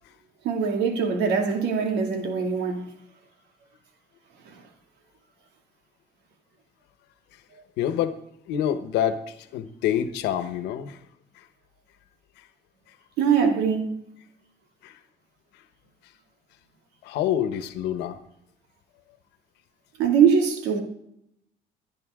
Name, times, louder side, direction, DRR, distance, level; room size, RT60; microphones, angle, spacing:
voice 1, 0.4-2.9 4.5-4.6 13.2-14.1 20.0-20.8, right 6 dB, 85° right, 2.3 m, -22 dB
voice 2, 7.8-8.2 8.5-11.0 14.8-14.9 17.0-18.2, left 10 dB, 90° left, 1.2 m, -27 dB
25.5 x 9.9 x 3.7 m
cardioid pair, 110°, 17 cm